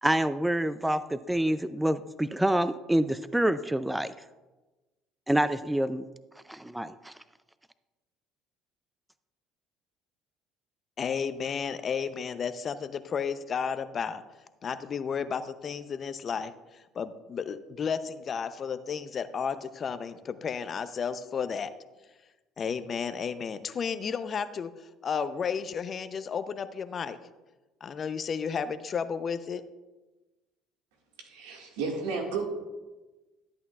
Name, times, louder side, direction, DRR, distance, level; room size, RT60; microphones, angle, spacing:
voice 1, 0.0-4.1 5.3-6.0 6.5-7.1, right 1 dB, 5° right, 14 dB, 0.4 m, -27 dB
voice 2, 11.0-14.2 14.6-21.7 22.6-24.7 25.0-27.2 27.8-29.6, left 6 dB, 45° left, 12 dB, 0.6 m, -33 dB
voice 3, 31.2-32.4, right 4 dB, 85° right, 1 dB, 1.8 m, -32 dB
13.0 x 8.6 x 2.4 m, 1.1 s
supercardioid pair, 75°, 0 cm